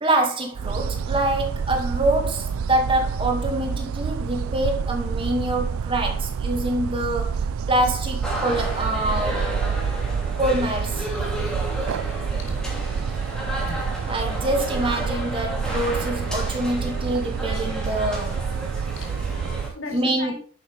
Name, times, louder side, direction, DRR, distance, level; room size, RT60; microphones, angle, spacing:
voice 1, 0.0-9.4 10.4-11.1 14.1-18.5 19.9-20.3, right 1 dB, 25° right, 2.2 m, -25 dB
sound 1, 0.5-19.7, right 6 dB, 80° right, 0.4 m, -28 dB
sound 2, 8.2-19.7, equal, 5° left, 3.1 m, -33 dB
voice 2, 11.0-12.7 13.6-13.8 18.8-20.3, left 2 dB, 70° left, 4.3 m, -40 dB
10.5 x 8.4 x 3.5 m
head